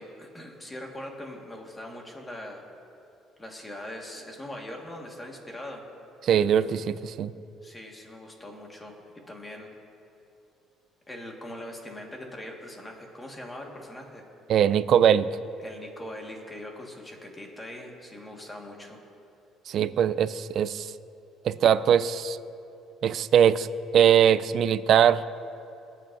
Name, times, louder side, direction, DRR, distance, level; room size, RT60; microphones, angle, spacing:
voice 1, 0.0-2.6 3.4-5.8 7.6-8.9 9.3-9.7 11.1-14.2 15.6-19.0, left 1 dB, 15° left, 1 dB, 1.5 m, -41 dB
voice 2, 6.2-7.3 14.5-15.3 19.7-20.9 21.4-22.4 23.0-23.7 23.9-25.2, right 9 dB, 50° right, 14 dB, 0.4 m, -21 dB
24.5 x 8.9 x 2.6 m, 2.7 s
cardioid pair, 145°, 0 cm